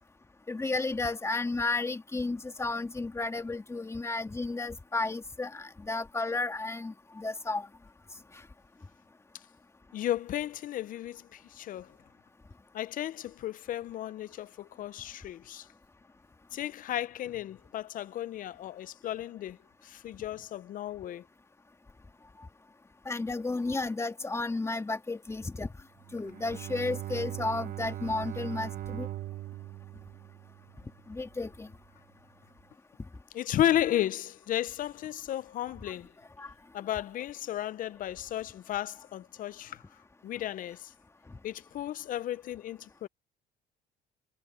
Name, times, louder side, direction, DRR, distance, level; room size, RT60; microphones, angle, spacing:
voice 1, 0.5-7.7 23.1-25.7 26.1-29.1 31.1-31.7 36.4-36.5, left 3 dB, 15° left, 2.5 m, -33 dB
voice 2, 9.9-11.9 12.7-15.6 16.5-19.6 19.8-21.2 33.3-36.1 36.7-39.8 40.2-40.8 41.4-43.1, left 12 dB, 55° left, 0.5 m, -34 dB
Bowed string instrument, 26.0-31.2, right 14 dB, 55° right, 0.9 m, -40 dB
cardioid pair, 110°, 17 cm